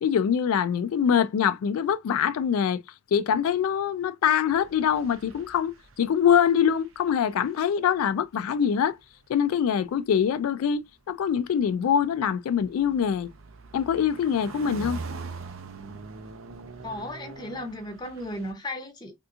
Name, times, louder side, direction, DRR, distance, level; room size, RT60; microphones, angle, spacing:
voice 1, 0.0-2.8 3.1-9.0 9.3-13.3 13.7-15.0, left 8 dB, 85° left, 0.3 m, -24 dB
sound 1, 4.5-6.4 6.7-8.0 9.0-9.2 11.3-18.5, right 4 dB, 70° right, 0.6 m, -42 dB
voice 2, 16.8-19.1, left 1 dB, 20° left, 0.7 m, -35 dB
3.4 x 2.7 x 2.4 m
head